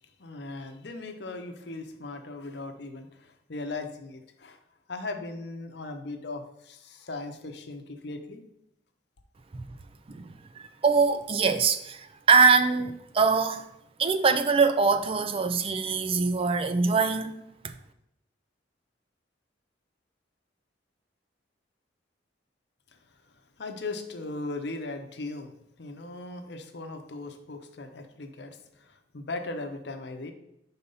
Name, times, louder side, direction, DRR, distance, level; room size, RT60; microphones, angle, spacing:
voice 1, 0.2-4.6 4.9-8.4 23.6-30.3, left 2 dB, 65° left, 0.7 m, -38 dB
voice 2, 10.1-13.7 14.0-17.3, right 5 dB, 30° right, 0.4 m, -23 dB
5.4 x 4.1 x 5.5 m
head